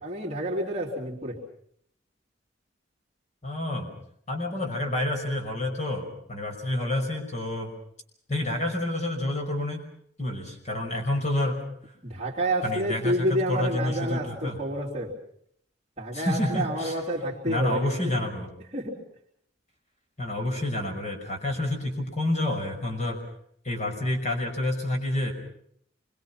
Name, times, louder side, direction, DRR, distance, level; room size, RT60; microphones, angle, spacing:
voice 1, 0.0-1.4 12.0-15.2 16.0-18.1 18.7-19.0, right 1 dB, 35° right, -5 dB, 3.7 m, -29 dB
voice 2, 3.4-3.9 4.3-7.7 8.3-9.8 10.2-11.6 12.6-14.6 16.1-17.0 17.5-18.5 20.2-23.2 23.6-25.3, left 1 dB, 40° left, 3 dB, 5.7 m, -28 dB
27.5 x 24.0 x 6.0 m, 0.68 s
head